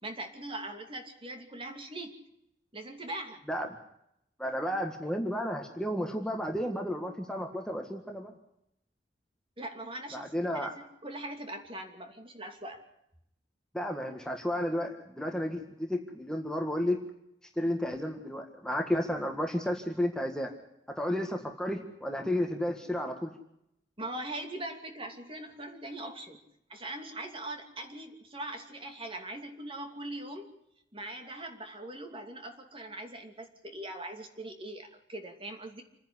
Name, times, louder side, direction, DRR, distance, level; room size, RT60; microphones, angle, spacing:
voice 1, 0.0-2.2 2.7-3.4 9.6-12.8 24.0-26.4 26.7-30.5 30.9-35.8, right 1 dB, 30° right, 5 dB, 2.7 m, -41 dB
voice 2, 4.4-8.3 10.1-10.7 13.7-17.0 17.6-20.5 21.0-23.3, left 1 dB, 5° left, 3 dB, 1.8 m, -32 dB
27.5 x 10.5 x 9.8 m, 0.78 s
head